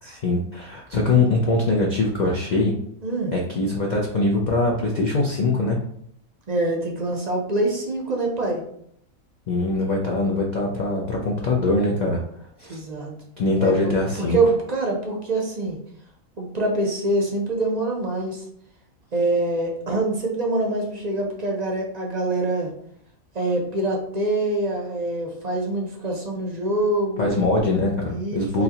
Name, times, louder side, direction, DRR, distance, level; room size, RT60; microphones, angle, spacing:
voice 1, 0.0-2.7 3.3-5.8 9.5-12.2 12.6-12.8 13.4-14.4 27.2-28.6, left 2 dB, 55° left, -2 dB, 0.4 m, -22 dB
voice 2, 3.0-3.3 6.5-8.6 12.7-13.1 13.6-13.9 14.3-15.8 16.4-18.4 19.1-22.7 23.3-27.3 28.1-28.6, right 2 dB, 45° right, 0 dB, 0.5 m, -25 dB
4.0 x 2.7 x 2.8 m, 0.69 s
omnidirectional pair, 1.5 m